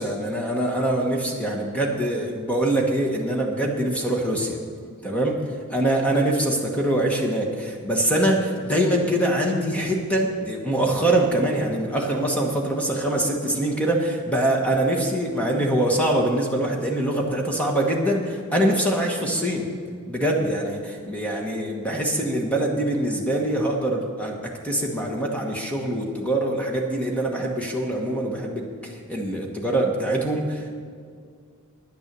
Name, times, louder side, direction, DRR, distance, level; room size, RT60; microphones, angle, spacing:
voice 1, 0.0-4.6 5.0-5.3 5.7-19.7 20.1-30.7, right 1 dB, 5° left, 0 dB, 1.2 m, -24 dB
9.7 x 9.6 x 6.8 m, 2.2 s
head